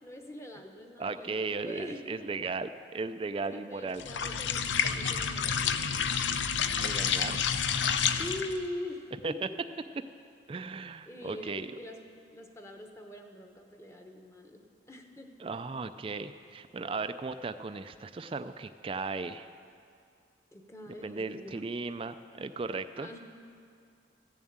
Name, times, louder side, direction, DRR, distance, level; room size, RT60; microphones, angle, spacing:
voice 1, 0.0-2.3 3.5-5.8 8.2-9.6 10.1-10.2 11.1-12.0 12.3-15.3 20.5-21.7 22.9-23.2, left 1 dB, 15° left, 4 dB, 0.9 m, -43 dB
voice 2, 1.0-4.1 6.8-7.4 9.2-9.3 10.5-11.7 15.4-19.5 21.0-23.1, right 4 dB, 30° right, 10 dB, 0.3 m, -36 dB
sound 1, 4.0-8.6, left 7 dB, 80° left, 0.6 m, -29 dB
15.0 x 7.2 x 8.7 m, 2.3 s
head